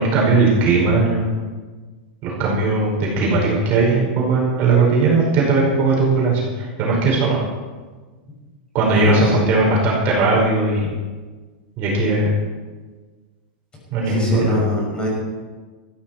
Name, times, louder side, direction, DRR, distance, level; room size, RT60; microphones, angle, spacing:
voice 1, 0.0-1.4 2.2-7.4 8.7-10.9 11.8-12.3 13.9-14.6, right 3 dB, 35° right, -3 dB, 5.2 m, -18 dB
voice 2, 8.9-9.5 14.1-15.1, equal, 15° left, -3 dB, 6.0 m, -21 dB
17.0 x 14.5 x 4.5 m, 1.3 s
supercardioid pair, 155°, 5 cm